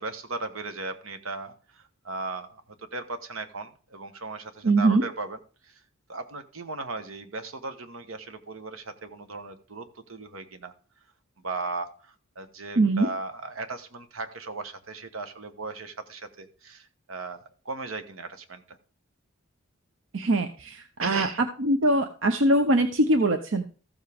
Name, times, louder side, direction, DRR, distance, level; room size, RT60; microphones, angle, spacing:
voice 1, 0.0-5.4 5.6-5.8 6.1-10.7 11.4-18.8 21.0-21.4, right 3 dB, 80° right, 9 dB, 1.2 m, -37 dB
voice 2, 4.6-5.0 12.8-13.1 20.1-21.3 21.6-23.6, right 1 dB, 65° right, 7 dB, 0.8 m, -22 dB
14.0 x 7.3 x 3.6 m, 0.38 s
head